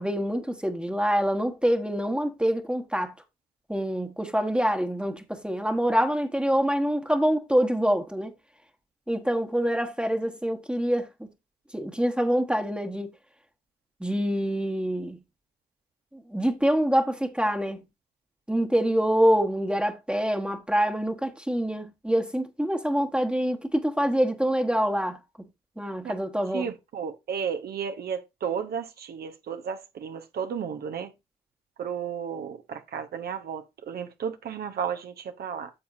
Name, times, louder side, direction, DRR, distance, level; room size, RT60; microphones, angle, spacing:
voice 1, 0.0-3.1 3.7-8.3 9.1-11.1 11.7-13.1 14.0-15.2 16.1-17.8 18.5-25.2 25.8-26.7, equal, 5° right, 1.2 m, -25 dB
voice 2, 26.5-31.1 31.8-35.7, right 7 dB, 65° right, 0.9 m, -33 dB
9.7 x 7.0 x 2.6 m
hypercardioid pair, 45°, 18 cm